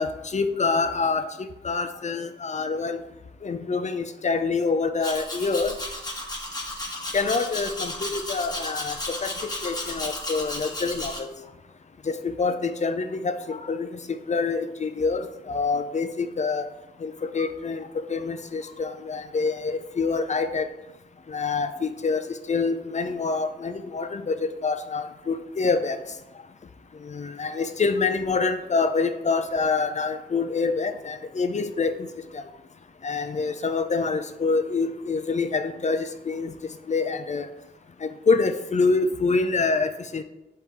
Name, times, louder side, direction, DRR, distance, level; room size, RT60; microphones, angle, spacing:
voice 1, 0.0-3.0 3.4-5.7 7.1-11.3 12.1-13.9 14.3-16.7 17.0-20.6 21.3-22.2 22.5-26.0 27.0-31.9 32.3-32.4 33.0-36.5 36.9-37.5 38.0-40.2, left 4 dB, 35° left, 9 dB, 0.5 m, -26 dB
Domestic sounds home sounds, 5.0-11.2, left 1 dB, 20° left, 1.3 m, -33 dB
6.8 x 4.3 x 3.6 m, 0.95 s
cardioid pair, 90°, 20 cm